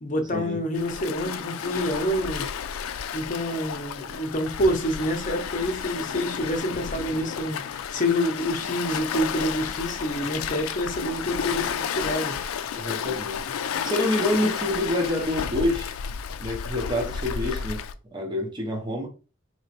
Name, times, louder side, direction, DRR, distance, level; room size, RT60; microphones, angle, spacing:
voice 1, 0.0-2.5 3.1-12.6, equal, 40° left, 0.7 m, -27 dB
Waves surf, 0.7-17.9, left 7 dB, 85° left, 0.4 m, -32 dB
voice 2, 12.7-13.4 13.8-15.9 16.4-17.8 18.1-19.1, left 1 dB, 20° right, 0.7 m, -27 dB
4.1 x 2.9 x 2.9 m
head